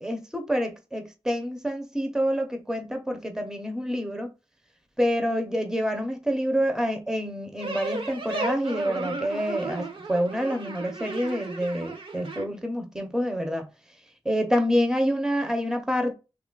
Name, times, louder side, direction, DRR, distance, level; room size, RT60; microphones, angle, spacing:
voice 1, 0.0-4.3 5.0-13.7 14.2-16.1, equal, 5° right, 0.7 m, -27 dB
sound 1, 7.6-12.4, right 3 dB, 50° right, 0.7 m, -34 dB
2.9 x 2.4 x 3.8 m
wide cardioid pair, 75°, 11 cm